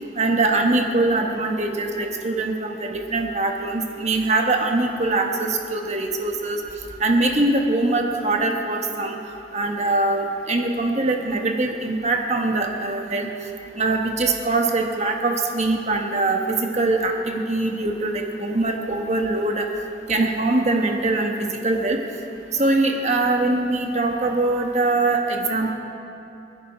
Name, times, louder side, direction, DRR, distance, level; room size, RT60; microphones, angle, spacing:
voice 1, 0.2-6.6 7.0-9.2 9.5-13.3 13.8-19.7 20.1-22.0 22.6-25.7, right 2 dB, 40° right, 2 dB, 1.3 m, -22 dB
27.5 x 10.5 x 4.4 m, 2.8 s
head